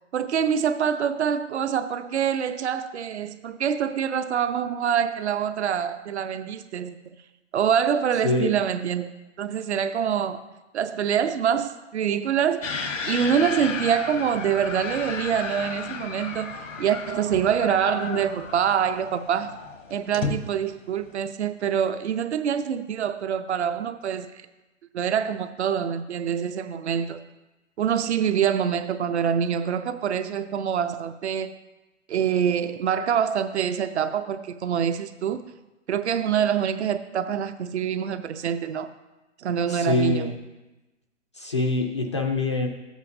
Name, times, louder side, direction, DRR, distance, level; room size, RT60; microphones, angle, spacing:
voice 1, 0.1-7.2 7.5-9.1 9.4-10.4 10.7-12.7 13.1-19.6 19.9-24.3 24.9-27.2 27.8-31.6 32.1-35.4 35.9-38.9 39.4-40.3, right 8 dB, 60° right, 0.7 m, -25 dB
sound 1, 12.6-21.3, left 5 dB, 85° left, 1.2 m, -34 dB
voice 2, 39.7-40.3 41.3-42.7, left 2 dB, 25° left, 0.4 m, -24 dB
13.5 x 8.2 x 2.7 m
hypercardioid pair, 155°, 37 cm